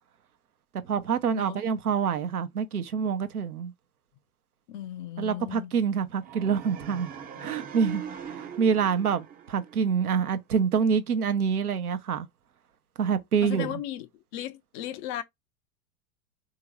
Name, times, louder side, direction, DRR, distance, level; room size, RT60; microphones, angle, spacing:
voice 1, 0.8-3.7 5.2-7.1 7.4-8.0 8.3-12.3 13.0-13.8, right 6 dB, 85° right, 0.7 m, -26 dB
voice 2, 4.7-5.7 13.4-15.2, left 12 dB, 35° left, 0.4 m, -36 dB
sound 1, 6.2-10.3, right 7 dB, 20° right, 0.5 m, -41 dB
3.7 x 2.8 x 3.0 m
figure-of-eight pair, 95°, 44 cm